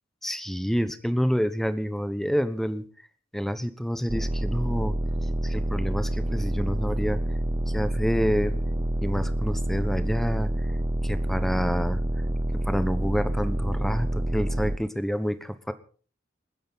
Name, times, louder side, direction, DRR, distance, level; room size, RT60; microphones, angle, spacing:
voice 1, 0.2-2.8 3.3-5.0 5.4-7.2 7.7-8.6 9.0-10.5 11.0-12.0 12.7-15.7, equal, ahead, 11 dB, 1.1 m, -28 dB
sound 1, 4.1-14.8, right 1 dB, 25° right, 0.8 m, -27 dB
28.5 x 10.5 x 4.1 m, 0.40 s
head